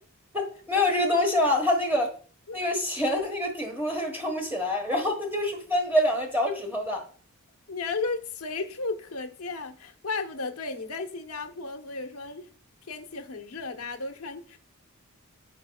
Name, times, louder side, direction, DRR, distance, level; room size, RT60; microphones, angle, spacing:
voice 1, 0.3-2.1 2.5-7.0, left 1 dB, 10° right, 1.4 m, -26 dB
voice 2, 7.7-12.5 12.9-14.6, left 3 dB, 80° left, 1.1 m, -34 dB
14.5 x 5.4 x 2.3 m
head